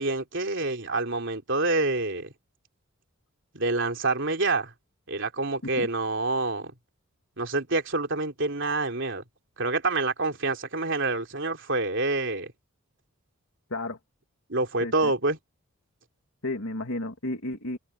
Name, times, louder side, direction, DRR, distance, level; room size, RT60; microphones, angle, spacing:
voice 1, 0.0-2.3 3.5-4.7 5.1-6.7 7.4-9.2 9.6-12.5 14.5-15.4, right 2 dB, 60° right, 3.5 m, -27 dB
voice 2, 14.8-15.1 16.4-17.8, left 2 dB, 70° left, 2.6 m, -32 dB
head